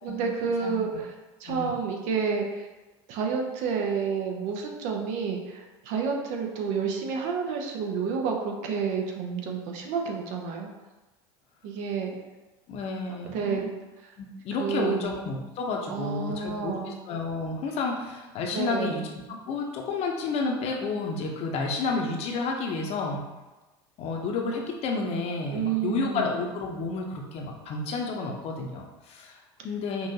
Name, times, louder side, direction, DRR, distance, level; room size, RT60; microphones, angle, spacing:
voice 1, 0.0-1.1 1.4-2.7 3.1-10.7 11.6-12.1 13.3-13.6 14.6-15.0 15.9-17.0 18.5-19.0 25.5-26.3, right 5 dB, 60° right, 2 dB, 0.7 m, -29 dB
voice 2, 1.4-1.8 12.7-13.7 14.2-23.2 24.0-30.1, left 3 dB, 50° left, 1 dB, 0.8 m, -31 dB
5.4 x 2.5 x 2.8 m, 1.1 s
hypercardioid pair, 95°, 14 cm